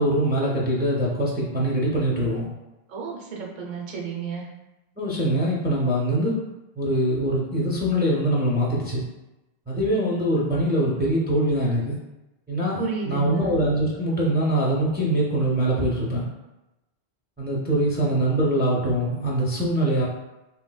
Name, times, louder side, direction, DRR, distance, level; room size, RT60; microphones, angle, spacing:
voice 1, 0.0-2.5 5.0-6.4 6.8-9.0 9.7-12.0 12.5-16.3 17.4-20.0, right 1 dB, 15° right, -5 dB, 0.3 m, -23 dB
voice 2, 2.9-4.5 12.8-13.5, right 5 dB, 55° right, -2 dB, 0.7 m, -32 dB
3.1 x 3.0 x 2.2 m, 1.0 s
omnidirectional pair, 1.0 m